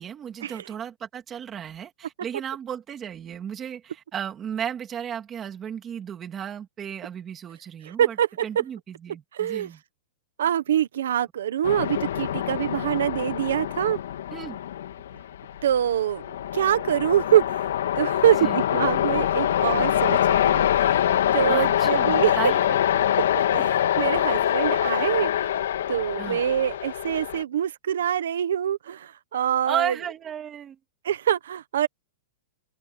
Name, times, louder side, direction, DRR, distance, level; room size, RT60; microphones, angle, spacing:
voice 1, 0.0-8.2 8.4-9.8 14.3-14.6 18.4-18.6 21.5-23.1 24.4-24.5 26.2-26.4 29.7-30.8, right 8 dB, 15° right, 3.0 m, -34 dB
voice 2, 7.8-8.4 9.3-9.7 10.4-14.0 15.6-17.7 18.0-21.1 21.3-22.4 23.5-25.5 25.9-30.0 31.0-31.9, right 10 dB, 75° right, 1.2 m, -25 dB
sound 1, 11.6-27.4, left 11 dB, 70° left, 1.9 m, -24 dB
supercardioid pair, 180°, 0 cm